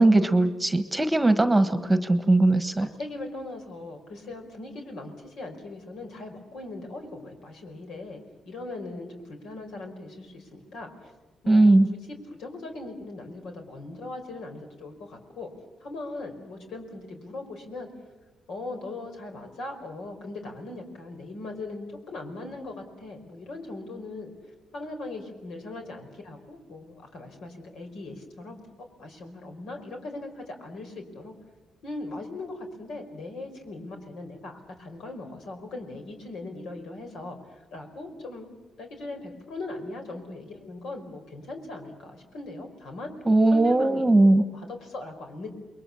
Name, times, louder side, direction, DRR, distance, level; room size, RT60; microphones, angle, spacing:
voice 1, 0.0-2.9 11.5-11.9 43.3-44.4, right 2 dB, 10° right, 10 dB, 1.4 m, -19 dB
voice 2, 1.8-11.1 11.4-15.5 15.8-17.9 18.5-24.3 24.7-28.6 29.0-31.4 31.8-38.5 38.8-43.1 43.5-44.0 44.4-45.5, left 2 dB, 75° left, 4 dB, 4.9 m, -39 dB
29.0 x 22.0 x 7.2 m, 1.2 s
cardioid pair, 90°, 0 cm